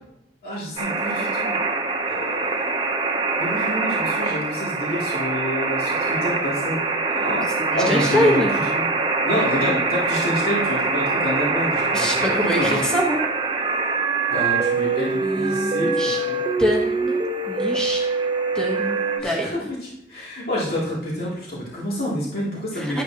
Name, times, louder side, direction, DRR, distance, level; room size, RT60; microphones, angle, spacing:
voice 1, 0.4-1.6 2.1-2.7 3.3-6.8 7.1-7.4 7.7-8.8 9.2-12.8 14.3-16.4 19.2-23.0, left 1 dB, 55° left, -6 dB, 2.8 m, -28 dB
sound 1, 0.8-19.2, right 3 dB, 30° right, 0.8 m, -24 dB
voice 2, 7.6-8.5 11.9-13.2 15.1-16.2 16.6-17.2 17.5-18.0 18.5-19.5 22.7-23.0, equal, 5° left, -3 dB, 1.3 m, -24 dB
12.0 x 8.7 x 2.9 m, 0.80 s
head